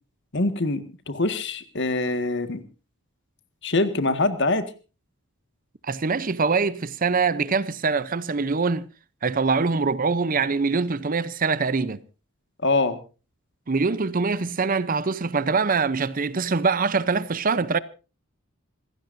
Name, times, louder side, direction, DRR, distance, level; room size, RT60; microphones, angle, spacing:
voice 1, 0.3-2.6 3.6-4.7 12.6-13.0, left 2 dB, 55° left, 1.7 m, -24 dB
voice 2, 5.8-8.9 9.2-12.0 13.7-17.8, right 4 dB, 40° right, 0.7 m, -24 dB
26.5 x 16.5 x 2.7 m
head